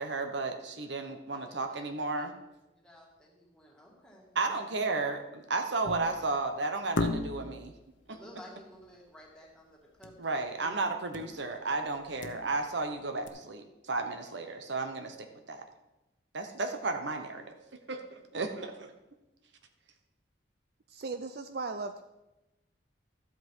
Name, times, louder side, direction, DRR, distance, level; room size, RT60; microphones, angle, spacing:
voice 1, 0.0-2.3 4.3-7.7 10.2-15.6 16.3-18.9, right 3 dB, 75° right, 6 dB, 1.1 m, -33 dB
voice 2, 1.3-1.9 2.2-2.3 2.8-4.7 8.1-10.8, left 1 dB, 5° left, -3 dB, 2.3 m, -54 dB
sound 1, 5.8-6.3 7.0-7.6 10.0-10.3 10.5-10.6 11.1-11.5 11.9-12.8 13.3-13.4, left 2 dB, 85° left, 0.9 m, -35 dB
voice 3, 20.9-22.0, right 3 dB, 55° right, 8 dB, 0.4 m, -37 dB
12.5 x 8.1 x 4.6 m, 0.97 s
head